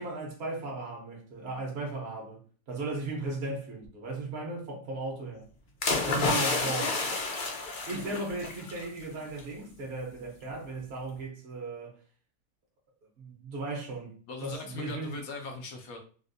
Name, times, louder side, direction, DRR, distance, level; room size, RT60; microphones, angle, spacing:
voice 1, 0.0-5.5 6.1-6.9 7.9-11.9 13.2-14.1 14.4-15.2, right 2 dB, 50° right, 1.1 m, -36 dB
sound 1, 5.8-8.8 9.2-9.4, left 3 dB, 50° left, 0.6 m, -30 dB
voice 2, 6.5-6.9 14.3-16.0, left 3 dB, 75° left, 1.1 m, -39 dB
3.3 x 2.6 x 2.6 m
omnidirectional pair, 1.5 m